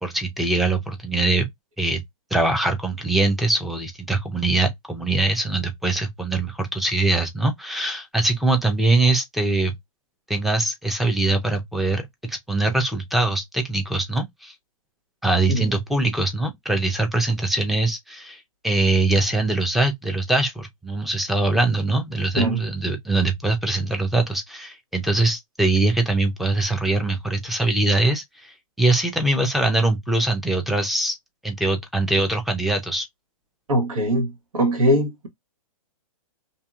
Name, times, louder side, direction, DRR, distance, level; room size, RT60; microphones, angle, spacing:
voice 1, 0.0-1.5 1.8-2.0 2.3-9.7 10.3-14.5 15.2-31.2 31.4-33.1, right 2 dB, ahead, 0.4 m, -22 dB
voice 2, 33.7-35.3, equal, 80° right, 1.3 m, -21 dB
2.8 x 2.7 x 2.3 m
hypercardioid pair, 145°, 18 cm